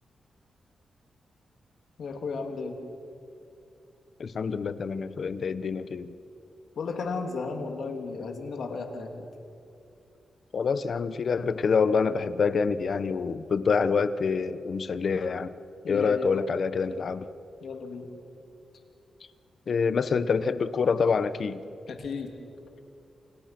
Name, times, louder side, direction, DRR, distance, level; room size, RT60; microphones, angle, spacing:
voice 1, 2.0-2.8 6.8-9.3 15.8-16.5 17.6-18.1 21.9-22.3, left 4 dB, 70° left, 4 dB, 3.2 m, -34 dB
voice 2, 4.2-6.1 10.5-15.5 15.9-17.3 19.7-21.6, left 5 dB, 55° left, 13 dB, 1.1 m, -26 dB
29.5 x 28.5 x 6.1 m, 2.6 s
wide cardioid pair, 120°, 0 cm